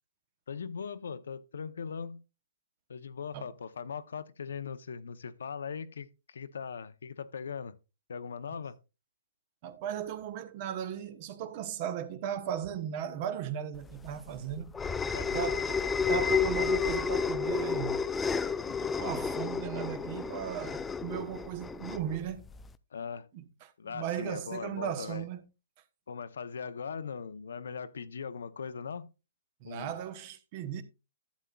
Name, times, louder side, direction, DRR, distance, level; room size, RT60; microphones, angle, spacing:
voice 1, 0.5-2.2 2.9-7.7 8.1-8.8 15.1-15.4 22.9-23.3 23.8-25.3 26.1-29.1 29.6-29.9, left 6 dB, 80° left, 0.7 m, -40 dB
voice 2, 9.6-14.8 15.3-15.8 16.1-18.0 18.7-22.4 23.3-25.4 29.6-30.8, right 9 dB, 35° right, 0.9 m, -36 dB
sound 1, 13.9-22.7, left 6 dB, 10° left, 0.4 m, -31 dB
11.5 x 8.1 x 2.3 m
hypercardioid pair, 150°, 0 cm